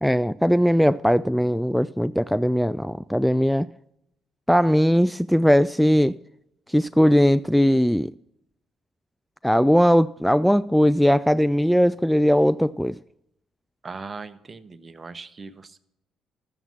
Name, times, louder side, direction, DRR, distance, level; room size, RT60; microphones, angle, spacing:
voice 1, 0.0-3.7 4.5-6.2 6.7-8.1 9.4-13.0, equal, ahead, 0.3 m, -19 dB
voice 2, 13.8-15.8, right 4 dB, 35° right, 0.9 m, -39 dB
13.0 x 7.2 x 5.6 m
hypercardioid pair, 55°, 0 cm